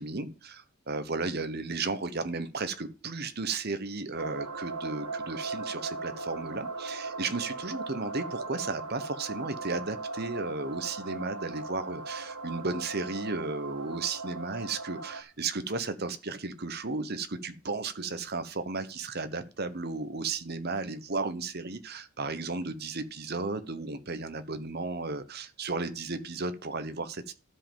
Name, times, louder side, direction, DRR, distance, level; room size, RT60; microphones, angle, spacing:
voice 1, 0.0-27.3, right 3 dB, 45° right, 10 dB, 1.1 m, -34 dB
sound 1, 4.1-15.2, right 3 dB, 85° right, 2.6 m, -38 dB
12.0 x 5.3 x 7.5 m, 0.33 s
head